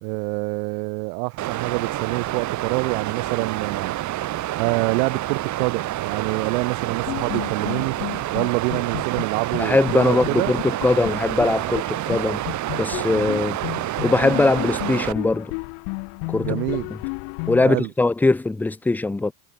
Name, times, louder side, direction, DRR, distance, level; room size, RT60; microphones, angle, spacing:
voice 1, 0.0-4.0 4.6-8.0 8.3-10.5 13.1-13.3 16.4-16.9 17.6-17.9, right 31 dB, 80° right, 2.5 m, -26 dB
Water, 1.4-15.1, right 15 dB, 40° right, 5.2 m, -28 dB
sound 1, 7.1-9.6 9.9-10.0 10.2-11.8 12.1-12.2 12.5-17.7, left 40 dB or more, 70° left, 2.0 m, -32 dB
voice 2, 9.6-12.4 12.8-13.6 14.0-15.5 16.3-16.6 17.5-19.3, left 3 dB, 5° left, 0.5 m, -21 dB
cardioid pair, 170°, 44 cm